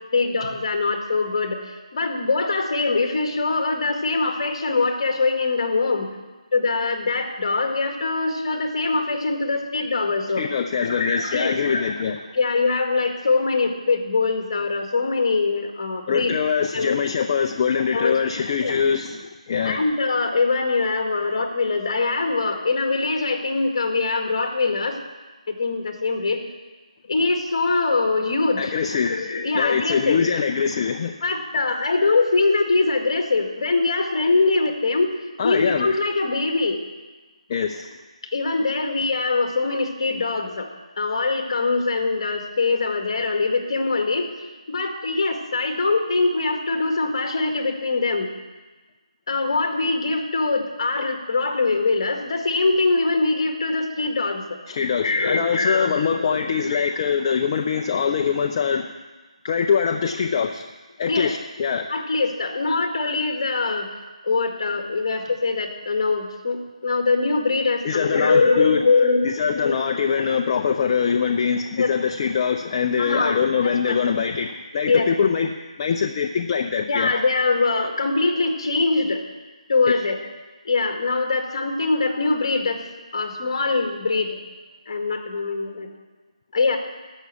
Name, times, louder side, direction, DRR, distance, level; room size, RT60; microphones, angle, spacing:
voice 1, 0.1-6.1 6.5-10.4 10.8-11.9 12.3-16.3 16.7-17.0 17.9-18.2 18.6-18.8 19.6-25.0 25.5-26.4 27.1-30.3 31.2-35.1 35.4-36.8 38.3-40.7 41.0-48.3 49.3-54.6 55.0-56.4 56.7-56.9 61.1-61.3 61.9-63.9 64.2-69.7 71.8-71.9 73.0-73.3 73.9-74.0 74.9-75.1 76.9-79.2 79.7-80.2 80.7-84.4 84.9-85.9 86.5-86.8, left 3 dB, 45° left, 4 dB, 1.8 m, -23 dB
voice 2, 10.4-12.2 16.1-19.8 28.6-29.2 29.5-31.2 35.4-35.9 37.5-38.0 54.7-58.9 59.4-60.7 61.0-61.9 67.8-68.8 69.2-77.1, left 6 dB, 30° left, 4 dB, 0.5 m, -23 dB
14.0 x 6.3 x 8.3 m, 1.2 s
figure-of-eight pair, 160°, 4 cm